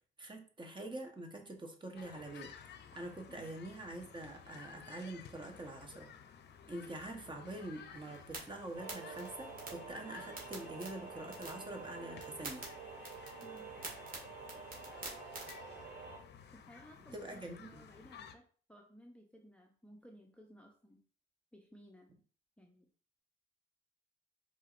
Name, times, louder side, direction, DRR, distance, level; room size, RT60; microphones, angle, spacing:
voice 1, 0.2-6.1 6.7-12.6 17.1-17.8, right 1 dB, 25° right, 3 dB, 1.1 m, -45 dB
sound 1, 2.0-18.3, left 7 dB, 60° left, 0.6 m, -55 dB
voice 2, 3.3-3.6 13.4-13.8 16.5-21.0 21.5-22.1 22.6-22.9, equal, 5° left, 0 dB, 0.7 m, -58 dB
sound 2, 7.9-15.5, right 3 dB, 45° right, 1.9 m, -50 dB
sound 3, 8.7-16.2, right 4 dB, 80° right, 2.1 m, -49 dB
4.5 x 4.2 x 2.5 m, 0.43 s
cardioid pair, 90°, 20 cm